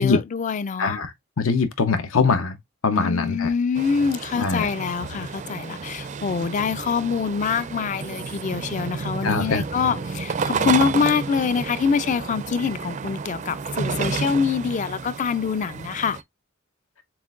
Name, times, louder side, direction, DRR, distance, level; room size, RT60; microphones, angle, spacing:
voice 1, 0.0-1.0 2.9-16.2, left 6 dB, 35° left, 0.3 m, -25 dB
voice 2, 0.8-2.6 2.8-3.5 4.4-4.7 9.2-9.6, left 4 dB, 85° left, 0.8 m, -22 dB
sound 1, 3.8-16.2, right 5 dB, 35° right, 0.4 m, -31 dB
7.2 x 2.5 x 2.4 m
head